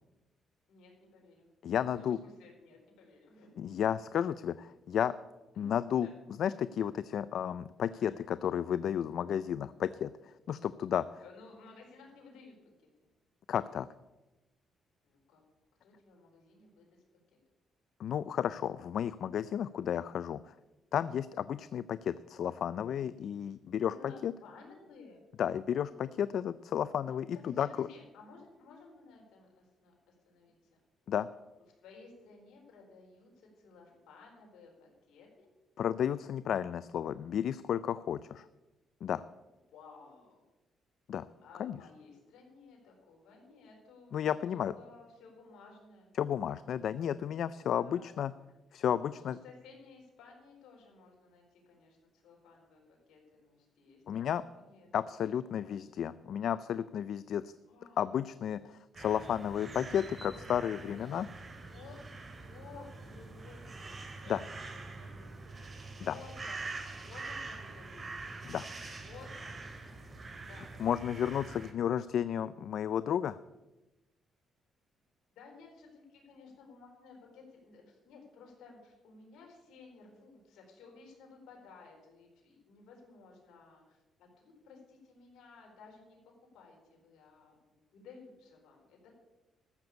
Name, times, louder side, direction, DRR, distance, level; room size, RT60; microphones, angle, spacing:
voice 1, 0.7-1.5 1.9-3.5 5.5-5.8 6.0-6.1 7.9-8.2 11.2-13.1 15.0-15.4 15.8-16.9 17.3-17.4 23.9-25.2 27.4-30.5 31.8-35.5 39.7-40.4 41.4-46.1 47.7-48.1 48.8-54.9 55.5-56.1 57.7-58.1 60.9-61.0 61.3-62.0 62.4-68.3 69.0-69.7 70.5-70.8 71.4-71.5 75.3-86.2 86.5-89.2, left 4 dB, 85° left, 0 dB, 4.2 m, -56 dB
voice 2, 1.6-2.2 3.6-5.1 5.6-6.1 6.4-11.2 13.5-13.9 18.0-20.5 20.9-24.3 25.4-27.9 31.1-31.3 35.8-38.5 39.0-39.2 41.1-41.3 41.6-41.8 44.1-44.7 46.2-48.3 48.7-49.4 54.1-54.4 54.9-57.5 58.0-61.3 64.3-64.4 66.0-66.1 68.5-68.7 70.8-73.4, left 9 dB, 65° left, 15 dB, 0.4 m, -32 dB
sound 1, 58.9-71.7, right 3 dB, 35° right, 2.5 m, -45 dB
14.0 x 6.9 x 8.3 m, 1.1 s
cardioid pair, 90°, 0 cm